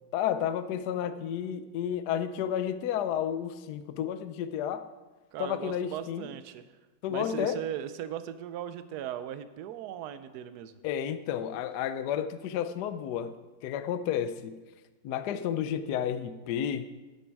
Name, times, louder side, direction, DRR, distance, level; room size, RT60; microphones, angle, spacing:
voice 1, 0.1-4.9 5.4-6.3 7.0-7.6 10.8-13.3 13.6-14.6 15.0-16.9, left 9 dB, 70° left, 11 dB, 1.0 m, -31 dB
voice 2, 5.3-6.6 7.1-10.7, right 10 dB, 70° right, 12 dB, 1.0 m, -38 dB
10.0 x 9.6 x 4.7 m, 1.2 s
omnidirectional pair, 2.2 m